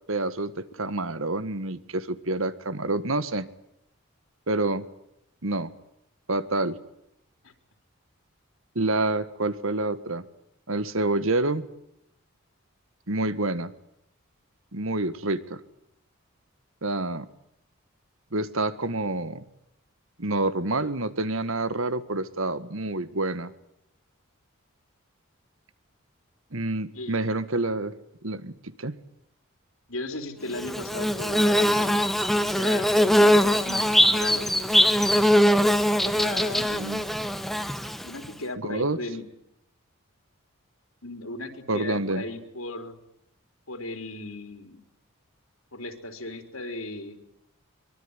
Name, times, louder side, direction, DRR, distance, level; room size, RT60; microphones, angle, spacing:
voice 1, 0.1-3.5 4.5-4.8 5.4-5.7 6.3-6.8 8.7-10.2 10.7-11.7 13.1-13.7 14.7-15.6 16.8-17.3 18.3-19.4 20.2-23.5 26.5-27.9 28.2-29.0 36.7-37.0 38.6-39.0 41.7-42.2, right 2 dB, 70° right, 14 dB, 1.7 m, -28 dB
voice 2, 26.9-27.4 29.9-32.0 32.4-34.7 36.0-36.7 38.0-39.3 41.0-43.0 43.7-44.8 45.7-47.2, left 2 dB, 75° left, 7 dB, 3.9 m, -36 dB
Bird / Buzz, 30.6-38.3, equal, ahead, 1.1 m, -22 dB
24.0 x 23.5 x 9.8 m, 0.78 s
head